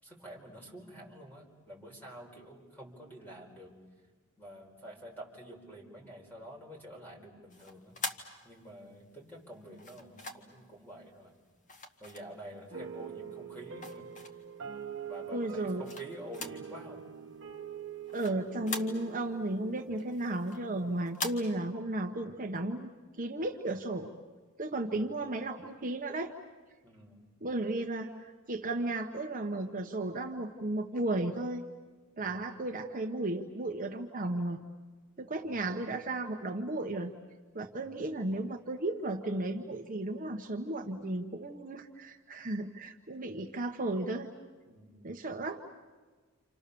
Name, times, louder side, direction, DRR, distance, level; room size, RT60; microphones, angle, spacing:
voice 1, 0.0-3.7 4.4-8.0 8.4-11.3 12.0-14.1 15.1-17.0 24.9-25.1 26.8-27.2 32.2-32.5 35.3-35.7 37.7-38.0 44.7-45.1, equal, 10° left, -1 dB, 5.1 m, -49 dB
sound 1, 7.5-8.9 9.8-10.6 11.7-12.7 13.2-14.6 15.1-16.7 17.0-17.1 17.5-19.4 19.7-21.3, left 3 dB, 35° left, 1.9 m, -42 dB
sound 2, 12.7-21.3, right 8 dB, 60° right, 1.3 m, -45 dB
voice 2, 15.3-15.8 18.1-22.9 23.2-24.1 24.6-26.3 27.4-31.6 32.2-34.6 35.2-37.1 37.5-44.3 45.0-45.6, right 2 dB, 40° right, 3 dB, 1.3 m, -34 dB
29.0 x 28.0 x 7.0 m, 1.4 s
head